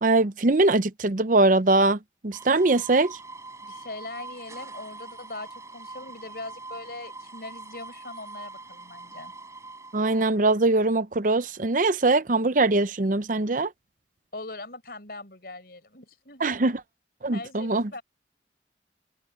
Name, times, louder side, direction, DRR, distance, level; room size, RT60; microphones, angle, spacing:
voice 1, 0.0-3.2 9.9-13.7 16.4-16.8 17.2-17.9, right 2 dB, 45° right, 0.7 m, -22 dB
sound 1, 2.3-10.3, right 3 dB, 15° right, 5.1 m, -43 dB
voice 2, 3.6-9.3 14.3-16.4 17.3-18.0, left 2 dB, 60° left, 5.5 m, -41 dB
open air
head